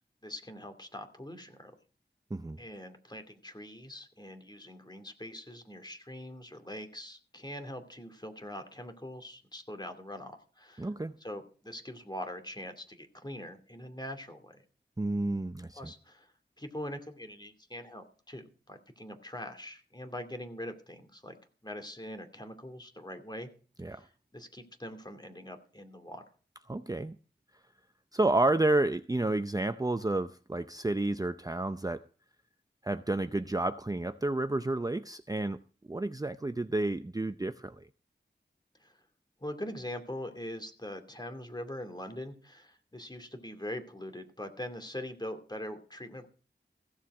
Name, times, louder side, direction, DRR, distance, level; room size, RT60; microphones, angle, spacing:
voice 1, 0.2-1.7 2.6-10.9 11.2-14.6 15.7-16.3 16.6-21.4 21.6-23.5 23.9-26.2 38.8-39.0 39.4-46.3, left 1 dB, 20° left, 2.5 m, -43 dB
voice 2, 10.8-11.1 15.0-15.8 23.8-24.0 26.7-27.2 28.1-32.0 32.8-35.6 35.9-37.9, right 2 dB, 20° right, 0.6 m, -30 dB
15.5 x 7.3 x 6.0 m
wide cardioid pair, 50°, 19 cm